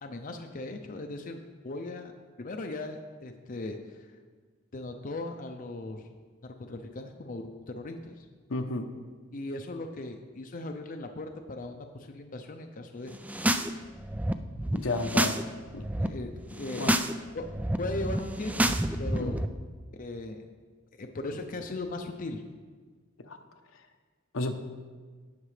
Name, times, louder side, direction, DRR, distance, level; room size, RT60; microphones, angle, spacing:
voice 1, 0.0-2.1 2.4-4.1 4.7-6.1 6.4-8.3 9.3-13.1 14.9-15.3 16.0-17.0 17.3-17.5 17.8-19.3 20.0-20.5 21.0-22.4, left 2 dB, 45° left, 5 dB, 0.6 m, -38 dB
voice 2, 8.5-8.9 14.7-15.4 15.7-16.1 16.8-17.0 19.2-19.4 23.2-23.4 24.3-24.5, left 2 dB, 75° left, 6 dB, 0.8 m, -32 dB
sound 1, 13.1-13.7 14.0-15.4 15.7-16.1 16.5-17.1 17.4-19.5, right 1 dB, 5° right, 0.3 m, -29 dB
17.5 x 5.9 x 3.3 m, 1.5 s
head